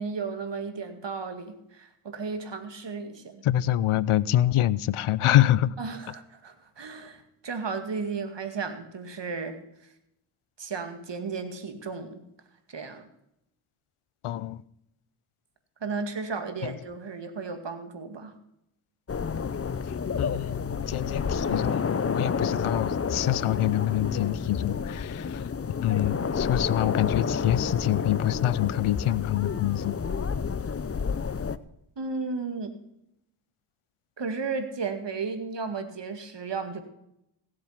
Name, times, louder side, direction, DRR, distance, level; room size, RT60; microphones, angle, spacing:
voice 1, 0.0-3.4 5.8-9.6 10.6-12.3 12.7-13.1 15.8-18.3 32.0-32.7 34.2-36.8, right 4 dB, 55° right, 2.2 m, -34 dB
voice 2, 3.4-5.7 14.2-14.6 16.6-16.7 20.2-25.5 25.8-30.0, left 13 dB, 80° left, 0.6 m, -26 dB
sound 1, 19.1-31.6, left 6 dB, 30° left, 0.7 m, -30 dB
16.5 x 7.7 x 5.8 m
cardioid pair, 55°, 50 cm